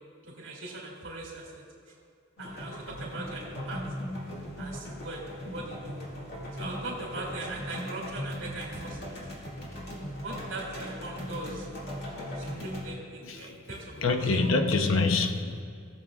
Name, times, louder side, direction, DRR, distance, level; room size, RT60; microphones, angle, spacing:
voice 1, 0.2-1.9 2.4-3.8 4.6-6.0 6.5-9.2 10.2-11.7 12.3-14.4, right 2 dB, 65° right, -3 dB, 2.3 m, -40 dB
sound 1, 2.4-12.8, equal, 50° left, 2.0 m, -39 dB
voice 2, 13.2-13.7 14.0-15.6, left 3 dB, 70° left, 6 dB, 0.7 m, -26 dB
18.0 x 7.1 x 2.4 m, 2.4 s
head